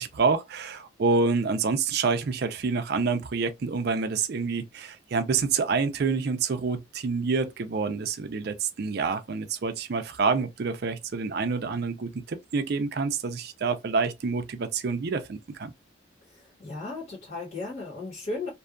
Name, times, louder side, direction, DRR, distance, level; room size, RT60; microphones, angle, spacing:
voice 1, 0.0-15.7, right 4 dB, 50° right, 0.4 m, -27 dB
voice 2, 16.3-18.5, left 3 dB, 45° left, 1.2 m, -35 dB
2.6 x 2.3 x 2.4 m
head